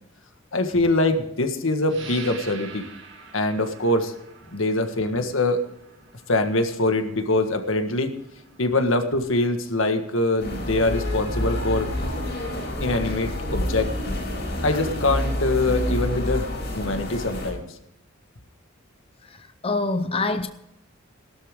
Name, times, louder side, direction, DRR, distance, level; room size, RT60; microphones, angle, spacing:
voice 1, 0.5-2.9 3.3-4.1 4.5-5.6 6.3-8.1 8.6-11.9 12.8-13.9 14.6-16.5 16.7-17.7 20.1-20.2, left 2 dB, 80° left, 1.6 m, -23 dB
sound 1, 1.9-12.2, right 4 dB, 65° right, 6.1 m, -46 dB
sound 2, 10.4-17.5, left 1 dB, 55° left, 6.4 m, -28 dB
voice 2, 19.3-20.5, left 3 dB, 30° left, 0.7 m, -26 dB
17.0 x 12.5 x 3.7 m
head